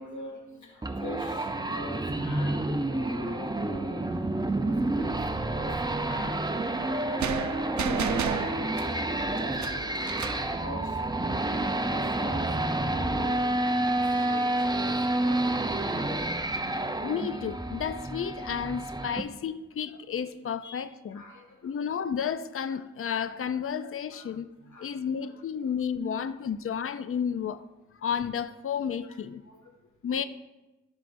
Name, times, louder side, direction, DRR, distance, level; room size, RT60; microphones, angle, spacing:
voice 1, 0.0-4.3 4.6-10.0 10.6-13.7 14.0-16.0 20.6-20.8 21.1-21.9 23.1-23.2 24.1-24.2 24.6-25.3 29.0-29.2 29.4-29.8, left 1 dB, 75° left, 1.8 m, -43 dB
sound 1, 0.8-19.2, right 2 dB, 15° right, 0.7 m, -29 dB
sound 2, 7.2-10.5, right 7 dB, 75° right, 0.6 m, -33 dB
voice 2, 17.0-21.2 21.6-24.5 24.8-27.6 28.0-29.4 30.0-30.2, left 7 dB, 50° left, 0.5 m, -32 dB
14.0 x 6.4 x 2.6 m
cardioid pair, 45°, 29 cm